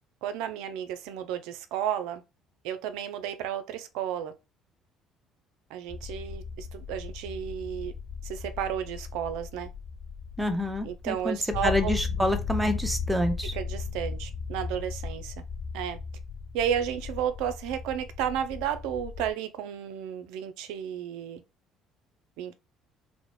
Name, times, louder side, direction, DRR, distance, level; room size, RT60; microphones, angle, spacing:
voice 1, 0.2-2.2 2.6-4.3 5.7-7.9 8.2-9.7 10.8-11.9 13.5-15.3 15.7-16.0 16.5-21.4 22.4-22.5, right 9 dB, 75° right, 0.4 m, -32 dB
sound 1, 5.9-19.3, left 5 dB, 50° left, 0.3 m, -36 dB
voice 2, 10.4-11.4 11.6-13.5, left 1 dB, 10° right, 0.7 m, -27 dB
2.4 x 2.1 x 3.0 m
hypercardioid pair, 60°, 0 cm